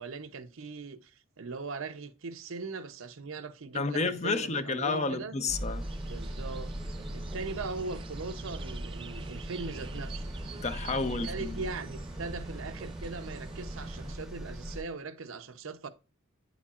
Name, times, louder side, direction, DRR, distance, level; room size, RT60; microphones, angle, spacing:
voice 1, 0.0-5.3 6.1-6.7 7.1-10.3 11.2-15.9, right 4 dB, 70° right, 0.7 m, -40 dB
voice 2, 3.7-5.9 10.6-11.6, left 3 dB, 30° left, 0.6 m, -31 dB
sound 1, 5.5-14.8, right 1 dB, 5° right, 0.8 m, -39 dB
sound 2, 5.8-14.2, right 4 dB, 25° right, 0.3 m, -46 dB
9.2 x 7.2 x 2.4 m
head